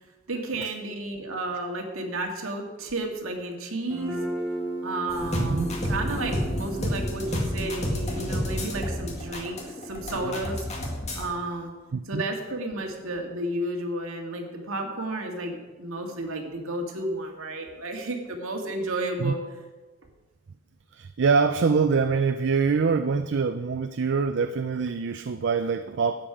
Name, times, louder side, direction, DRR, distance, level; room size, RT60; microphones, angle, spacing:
voice 1, 0.3-4.2 4.8-10.6 11.1-11.7 12.1-19.4, right 2 dB, 80° right, 2 dB, 1.9 m, -32 dB
Guitar, 3.9-11.6, right 1 dB, 5° right, 3.3 m, -38 dB
sound 1, 5.1-11.3, left 1 dB, 30° left, 1.9 m, -30 dB
voice 2, 5.3-5.7 11.9-12.2 19.2-19.3 20.9-26.3, right 5 dB, 55° right, 9 dB, 0.4 m, -24 dB
13.0 x 8.8 x 4.9 m, 1.2 s
head